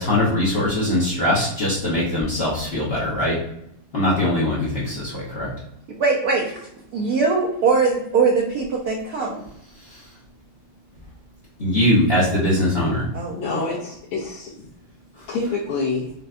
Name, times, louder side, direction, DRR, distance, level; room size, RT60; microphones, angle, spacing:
voice 1, 0.0-3.4 3.9-5.5 11.6-13.1, left 1 dB, 55° left, -7 dB, 0.6 m, -21 dB
voice 2, 6.0-6.6 6.9-9.4 13.1-13.8, right 4 dB, 70° right, -2 dB, 0.9 m, -21 dB
voice 3, 13.3-14.7 15.3-16.1, left 3 dB, 80° left, -6 dB, 1.7 m, -27 dB
5.1 x 2.2 x 2.5 m, 0.76 s
omnidirectional pair, 2.4 m